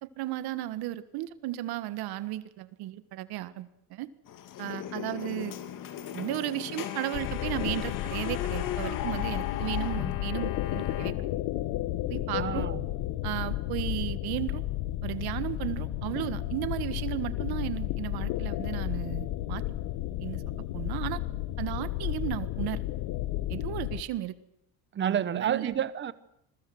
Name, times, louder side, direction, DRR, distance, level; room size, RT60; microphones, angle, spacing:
voice 1, 0.0-4.1 4.6-5.6 6.1-11.1 12.1-12.7 13.2-14.6 15.0-19.6 20.2-20.4 20.7-21.2 21.6-22.8 23.5-24.3 25.0-25.7, right 15 dB, 75° right, 1.8 m, -34 dB
sound 1, 4.3-11.1, left 10 dB, 55° left, 2.7 m, -37 dB
sound 2, 7.1-24.0, left 15 dB, 80° left, 1.4 m, -32 dB
voice 2, 12.3-12.8 24.9-26.1, right 9 dB, 30° right, 1.1 m, -29 dB
27.0 x 22.0 x 7.9 m
cardioid pair, 165°, 38 cm